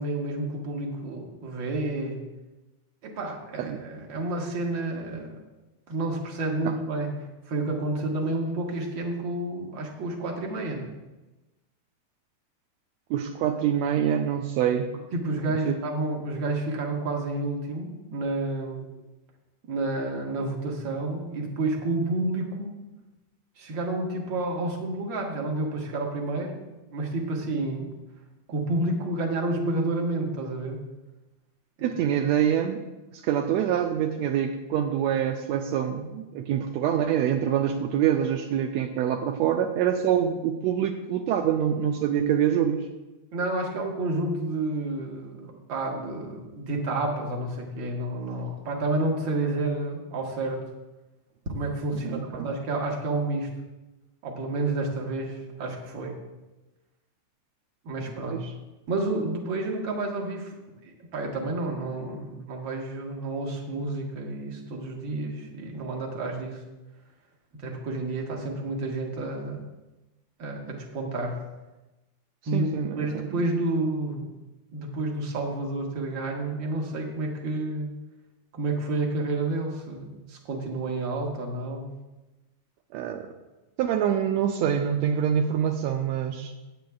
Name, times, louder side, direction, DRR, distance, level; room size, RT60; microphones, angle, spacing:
voice 1, 0.0-2.2 3.0-5.4 5.9-7.2 7.5-10.9 15.1-18.8 19.7-22.8 23.6-26.5 26.9-27.9 28.5-30.8 43.3-50.6 51.5-53.5 54.2-56.2 57.9-58.5 58.9-60.5 60.8-66.6 67.6-69.6 70.4-71.4 72.5-72.7 73.0-74.3 74.7-78.0 78.5-81.9, right 2 dB, 50° right, 0 dB, 1.7 m, -30 dB
voice 2, 13.1-14.9 15.6-15.8 31.8-32.8 33.1-42.9 52.0-52.5 58.3-58.5 72.5-73.4 82.9-83.3 83.8-86.5, right 9 dB, 85° right, 4 dB, 1.5 m, -25 dB
16.0 x 9.3 x 2.3 m, 1.1 s
omnidirectional pair, 3.6 m